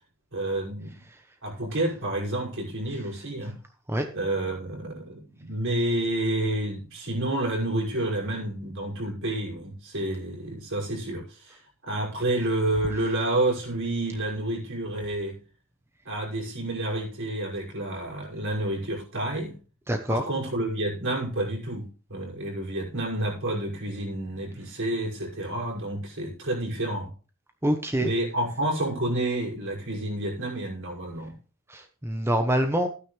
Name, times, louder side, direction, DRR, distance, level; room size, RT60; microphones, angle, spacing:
voice 1, 0.3-0.9 1.4-3.5 4.1-15.4 16.1-19.6 20.1-27.1 28.0-31.3, right 1 dB, 60° right, 6.0 m, -29 dB
voice 2, 19.9-20.2 27.6-28.1 31.7-32.9, equal, 10° right, 1.0 m, -25 dB
15.0 x 9.6 x 3.3 m
head